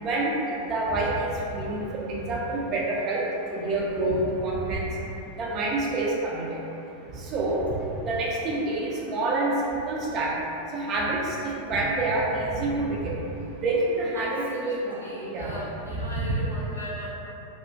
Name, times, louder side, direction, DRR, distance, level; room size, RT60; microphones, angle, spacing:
voice 1, 0.0-3.2 3.5-4.9 5.4-6.6 7.1-7.7 8.1-10.3 10.7-13.1 13.6-15.6 15.9-16.3, right 2 dB, 35° right, -3 dB, 0.4 m, -27 dB
voice 2, 14.1-17.1, equal, 75° left, -7 dB, 0.6 m, -38 dB
2.3 x 2.0 x 2.6 m, 2.8 s
figure-of-eight pair, 90°, 0 cm